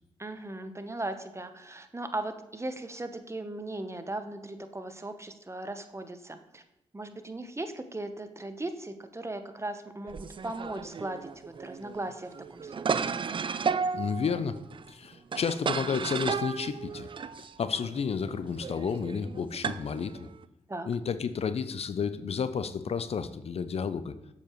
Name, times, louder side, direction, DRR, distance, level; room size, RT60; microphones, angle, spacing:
voice 1, 0.2-6.6 6.9-13.0 20.7-20.9, right 2 dB, 20° right, 8 dB, 0.9 m, -38 dB
sound 1, 10.1-20.4, right 5 dB, 40° right, 0.4 m, -34 dB
voice 2, 13.9-14.6 14.9-17.1 17.6-20.2 20.9-24.1, left 6 dB, 50° left, 12 dB, 0.5 m, -31 dB
7.3 x 6.8 x 3.0 m, 0.92 s
supercardioid pair, 40°, 13 cm